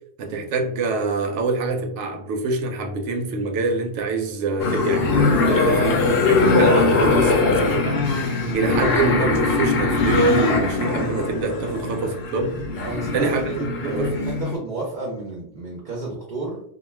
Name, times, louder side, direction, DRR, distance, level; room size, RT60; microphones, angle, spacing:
voice 1, 0.2-8.2 8.5-12.5 13.1-14.1, right 3 dB, 80° right, 4 dB, 0.9 m, -25 dB
sound 1, 4.6-14.5, left 3 dB, 60° left, 0.8 m, -21 dB
voice 2, 12.8-16.6, right 2 dB, 50° right, -2 dB, 0.6 m, -32 dB
2.3 x 2.2 x 3.2 m, 0.67 s
omnidirectional pair, 1.2 m